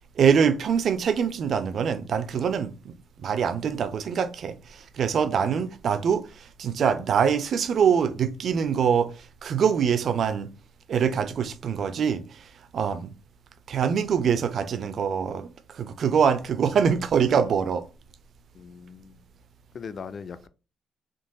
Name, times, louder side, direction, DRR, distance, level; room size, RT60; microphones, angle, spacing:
voice 1, 0.2-10.5 10.9-13.1 13.7-17.8, right 7 dB, 60° right, 0.5 m, -24 dB
voice 2, 18.5-19.2 19.7-20.5, left 6 dB, 50° left, 0.3 m, -39 dB
3.8 x 3.7 x 2.3 m
cardioid pair, 90°, 0 cm